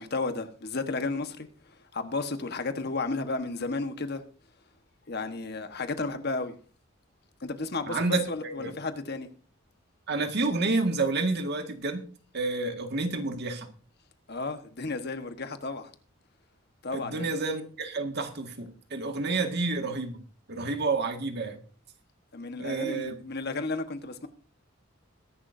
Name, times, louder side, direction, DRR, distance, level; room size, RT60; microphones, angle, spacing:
voice 1, 0.0-1.5 1.9-4.2 5.1-6.5 7.4-9.3 14.3-15.9 16.8-17.3 22.3-24.3, left 3 dB, 55° left, 1.4 m, -33 dB
voice 2, 7.9-8.7 10.1-12.0 12.3-13.7 16.9-20.2 20.5-21.6 22.6-23.1, right 3 dB, 55° right, 1.9 m, -29 dB
21.5 x 11.0 x 2.7 m
head